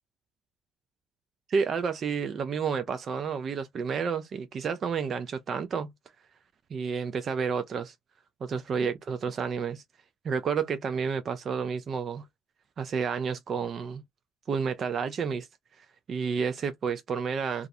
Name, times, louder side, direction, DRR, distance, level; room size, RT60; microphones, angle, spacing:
voice 1, 1.5-5.9 6.7-7.9 8.4-9.8 10.2-12.3 12.8-14.0 14.5-15.5 15.8-17.7, right 6 dB, 45° right, 0.3 m, -30 dB
2.3 x 2.0 x 2.5 m
cardioid pair, 90°, 0 cm